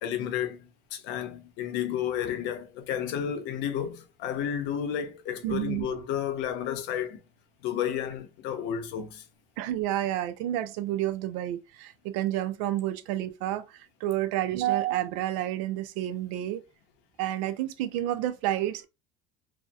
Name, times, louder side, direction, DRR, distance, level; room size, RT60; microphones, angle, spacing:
voice 1, 0.0-7.2 7.6-9.3, left 9 dB, 70° left, 0.6 m, -32 dB
voice 2, 5.4-5.9 9.6-16.6 17.2-18.9, right 13 dB, 85° right, 0.4 m, -30 dB
2.6 x 2.0 x 2.3 m
supercardioid pair, 105°, 19 cm